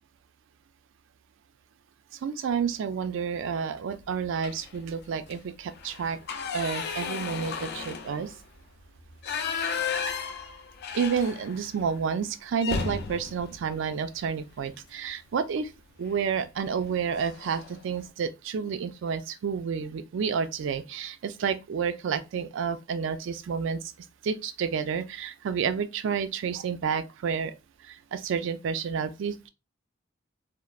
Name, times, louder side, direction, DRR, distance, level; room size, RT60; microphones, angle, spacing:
voice 1, 2.1-6.2 6.5-8.3 10.9-15.7 16.0-23.8 24.2-27.5 27.8-29.5, right 6 dB, 65° right, 0.3 m, -30 dB
sound 1, 4.4-4.8 5.2-5.3 5.7-11.8 12.1-12.2 12.6-14.7 16.1-16.3 16.7-16.9 17.1-17.8, left 5 dB, 55° left, 0.4 m, -34 dB
3.1 x 2.0 x 2.3 m
head